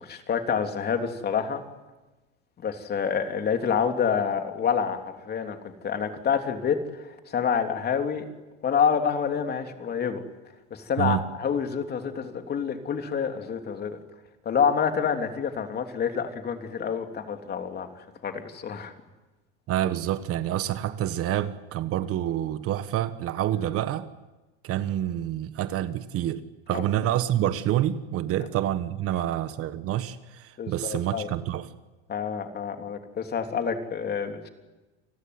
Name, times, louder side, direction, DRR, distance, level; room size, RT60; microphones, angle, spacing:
voice 1, 0.0-1.6 2.6-8.3 8.6-10.2 10.7-14.0 14.4-17.9 18.2-18.9 26.7-26.8 30.6-31.3 32.1-34.5, left 7 dB, 30° left, 3.3 m, -27 dB
voice 2, 19.7-24.1 24.6-31.7, right 12 dB, 45° right, 1.4 m, -27 dB
29.5 x 20.5 x 9.7 m
supercardioid pair, 130°, 33 cm